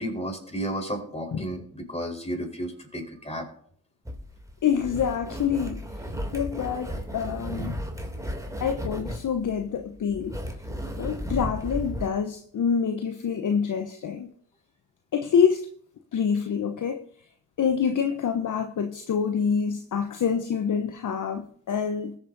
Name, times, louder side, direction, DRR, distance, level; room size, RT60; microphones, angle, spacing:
voice 1, 0.0-3.5, equal, 15° left, 4.4 m, -33 dB
sound 1, 4.0-12.1, equal, 10° right, 2.9 m, -34 dB
voice 2, 4.6-5.8 6.3-7.8 8.6-10.4 11.0-14.3 15.1-15.7 16.1-17.0 17.6-22.2, left 7 dB, 45° left, 1.0 m, -26 dB
20.0 x 7.6 x 2.7 m
hypercardioid pair, 45°, 43 cm